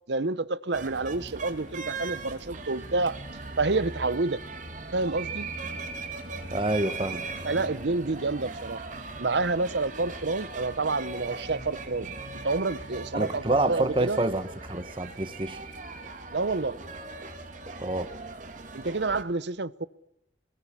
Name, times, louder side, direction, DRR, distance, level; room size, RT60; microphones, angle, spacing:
voice 1, 0.1-3.2 3.6-4.4 4.9-5.5 7.4-8.8 9.2-12.1 12.4-14.2 16.3-16.8 18.7-19.8, right 3 dB, 75° right, 0.9 m, -28 dB
sound 1, 0.7-19.2, right 3 dB, 45° right, 3.0 m, -39 dB
voice 2, 6.5-7.2 13.1-15.6 17.8-18.1, right 2 dB, 30° right, 1.3 m, -27 dB
26.0 x 21.0 x 9.9 m
head